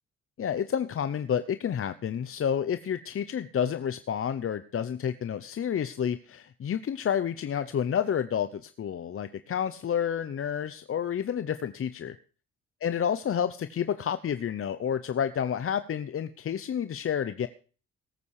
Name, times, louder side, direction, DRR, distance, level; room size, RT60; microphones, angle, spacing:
voice 1, 0.4-12.1 12.8-17.5, left 8 dB, 45° left, 12 dB, 0.9 m, -30 dB
18.5 x 8.5 x 4.8 m, 0.39 s
cardioid pair, 90°, 30 cm